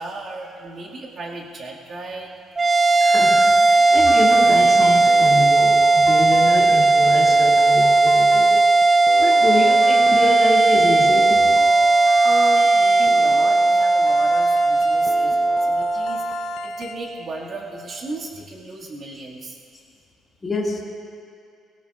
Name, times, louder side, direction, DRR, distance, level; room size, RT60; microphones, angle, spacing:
voice 1, 0.0-2.3 5.0-5.2 9.4-9.5 10.7-10.9 11.9-19.6, right 2 dB, 40° right, -3 dB, 1.9 m, -35 dB
sound 1, 2.6-17.2, right 3 dB, 20° right, 0.3 m, -16 dB
voice 2, 3.0-8.6 9.2-11.5 20.4-20.9, left 2 dB, 20° left, -4 dB, 2.0 m, -27 dB
sound 2, 4.0-16.9, left 10 dB, 85° left, 0.6 m, -36 dB
21.5 x 17.0 x 2.4 m, 2.4 s
cardioid pair, 155°, 0 cm